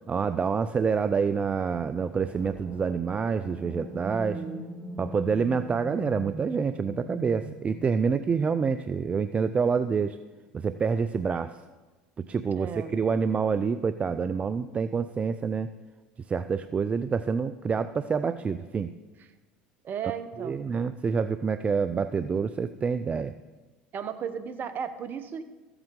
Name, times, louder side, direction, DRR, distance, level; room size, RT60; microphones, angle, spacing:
voice 1, 0.1-4.4 5.0-10.2 10.5-11.6 12.2-15.7 16.3-18.9 20.4-23.3, right 5 dB, 25° right, 12 dB, 0.4 m, -27 dB
sound 1, 2.0-9.7, left 1 dB, 15° left, 2.0 m, -42 dB
voice 2, 4.2-4.7 12.6-13.0 19.8-20.6 23.9-25.4, right 7 dB, 45° right, 11 dB, 1.0 m, -35 dB
14.0 x 7.9 x 3.7 m, 1.2 s
hypercardioid pair, 85°, 5 cm